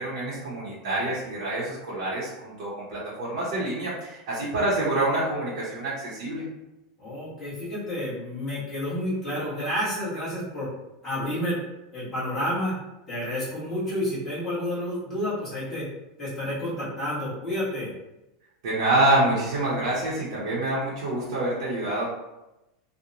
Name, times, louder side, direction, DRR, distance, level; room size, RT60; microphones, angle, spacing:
voice 1, 0.0-6.4 18.6-22.1, right 1 dB, 60° right, -8 dB, 0.7 m, -26 dB
voice 2, 7.0-10.7 11.0-11.6 11.9-12.7 13.1-15.9 16.2-17.9, left 1 dB, 10° left, -12 dB, 1.1 m, -30 dB
2.8 x 2.0 x 2.5 m, 0.97 s
supercardioid pair, 180°, 3 cm